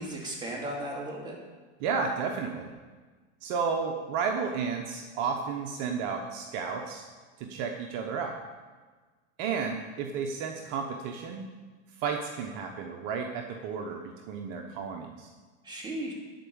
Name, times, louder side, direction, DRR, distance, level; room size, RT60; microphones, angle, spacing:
voice 1, 0.0-1.4 15.6-16.1, right 1 dB, 10° right, -3 dB, 2.4 m, -35 dB
voice 2, 1.8-2.7 3.4-7.0 7.4-8.4 9.4-11.5 12.0-15.3, right 5 dB, 55° right, 3 dB, 1.0 m, -32 dB
10.5 x 4.7 x 8.0 m, 1.4 s
supercardioid pair, 130°, 37 cm